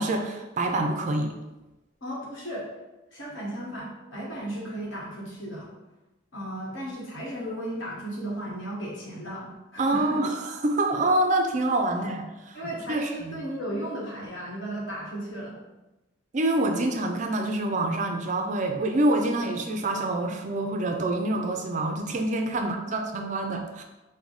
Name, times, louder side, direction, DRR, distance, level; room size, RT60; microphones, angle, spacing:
voice 1, 0.0-1.3 9.8-12.6 12.9-13.4 16.3-23.8, right 2 dB, 35° right, 4 dB, 0.4 m, -26 dB
voice 2, 2.0-2.7 3.1-5.7 6.3-10.2 11.8-12.0 12.5-15.6 22.5-22.7, right 1 dB, 65° left, -4 dB, 1.3 m, -35 dB
4.5 x 2.1 x 4.0 m, 1.0 s
head